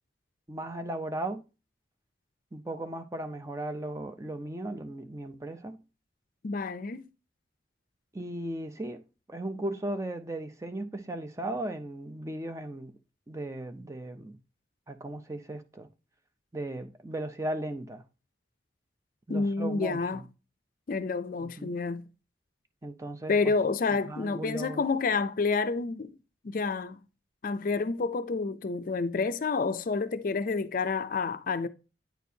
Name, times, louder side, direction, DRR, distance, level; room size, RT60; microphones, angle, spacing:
voice 1, 0.5-1.4 2.5-5.8 8.1-9.0 9.3-12.9 13.3-14.4 14.9-15.9 16.5-18.0 19.3-20.3 21.4-21.7 22.8-23.5 24.1-24.8, right 1 dB, 15° right, 0.5 m, -36 dB
voice 2, 6.4-7.1 19.3-20.2 20.9-22.1 23.3-26.1 26.4-27.0 27.4-31.7, left 4 dB, 50° left, 0.4 m, -29 dB
9.1 x 4.4 x 2.7 m
head